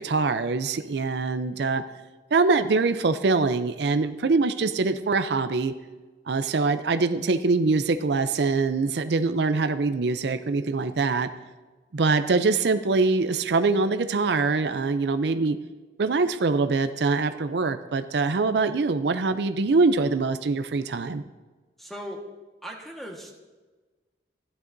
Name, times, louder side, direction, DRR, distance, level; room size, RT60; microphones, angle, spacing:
voice 1, 0.0-1.8 2.3-5.7 6.3-11.3 11.9-15.6 16.0-21.2, right 3 dB, 70° right, 9 dB, 0.5 m, -23 dB
voice 2, 21.8-22.2 22.6-23.3, equal, ahead, 0 dB, 1.4 m, -38 dB
15.5 x 11.0 x 2.6 m, 1.3 s
head